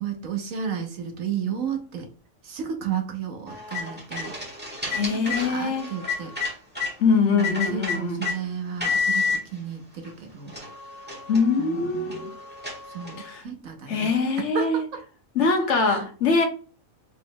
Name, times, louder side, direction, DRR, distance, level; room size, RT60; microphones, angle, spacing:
voice 1, 0.0-2.1 2.4-4.3 4.8-6.3 7.3-10.5 11.6-12.3 12.9-14.1 14.5-15.0 15.8-16.0, right 7 dB, 70° right, 1.3 m, -33 dB
sound 1, 3.5-6.9 7.4-8.4 8.8-9.4 10.1-10.2 10.5-13.3, left 4 dB, 10° right, 1.4 m, -30 dB
voice 2, 4.9-5.9 7.0-8.2 11.3-12.3 13.2-13.4 13.9-14.8 15.3-16.5, left 4 dB, 60° left, 1.0 m, -23 dB
4.9 x 3.9 x 2.2 m
omnidirectional pair, 1.5 m